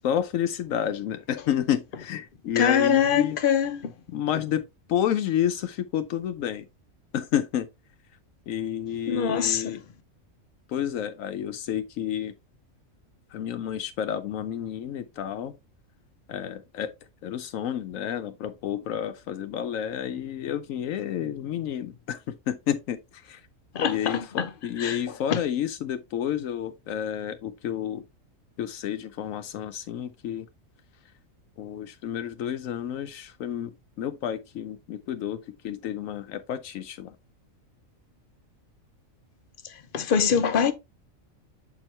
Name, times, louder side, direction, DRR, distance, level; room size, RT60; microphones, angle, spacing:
voice 1, 0.0-3.4 4.1-6.7 7.1-7.7 8.5-9.8 10.7-12.3 13.3-15.6 16.3-16.9 17.2-23.4 23.9-28.1 28.6-30.5 31.6-37.1, left 10 dB, 80° left, 1.0 m, -30 dB
voice 2, 2.6-3.9 9.1-9.8 23.7-24.5 24.8-25.0 25.3-25.4 39.9-40.7, left 7 dB, 50° left, 0.7 m, -23 dB
7.6 x 4.4 x 3.1 m
omnidirectional pair, 1.4 m